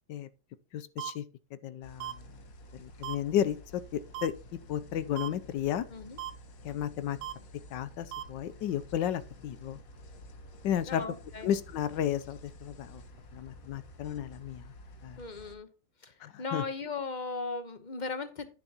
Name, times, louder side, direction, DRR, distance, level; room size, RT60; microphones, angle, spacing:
voice 1, 0.7-1.2 1.6-2.1 2.8-4.3 4.7-5.8 6.6-7.2 7.7-9.8 10.6-11.0 11.4-13.0 13.3-14.6 15.0-15.2 16.2-16.6, left 10 dB, 85° left, 1.3 m, -33 dB
sound 1, 1.0-1.1 2.0-2.1 3.0-3.2 4.1-4.3 5.2-5.3 6.2-6.3 7.2-7.3 8.1-8.2, right 12 dB, 80° right, 1.3 m, -37 dB
sound 2, 1.8-15.6, equal, 55° left, 1.6 m, -51 dB
voice 2, 10.8-11.5 15.2-15.7 16.0-18.5, left 3 dB, 30° left, 0.9 m, -37 dB
10.0 x 9.9 x 2.9 m
omnidirectional pair, 1.9 m